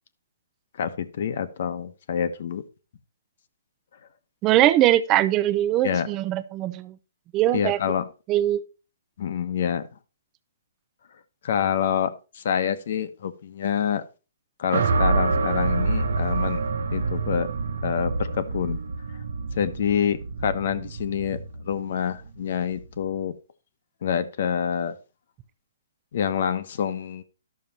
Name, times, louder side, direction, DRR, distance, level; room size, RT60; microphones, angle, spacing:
voice 1, 0.8-2.6 5.8-6.1 7.5-8.1 9.2-9.9 11.4-14.0 14.6-16.6 16.9-17.5 17.8-18.8 19.5-21.4 21.7-23.4 24.0-24.9 26.1-27.2, left 8 dB, 50° left, 12 dB, 1.1 m, -27 dB
voice 2, 4.4-7.0 7.3-7.8 8.3-8.6, right 13 dB, 20° right, 13 dB, 0.7 m, -21 dB
sound 1, 14.7-23.0, right 3 dB, 70° right, 1.3 m, -27 dB
11.5 x 6.7 x 4.3 m, 0.31 s
hypercardioid pair, 165°, 0 cm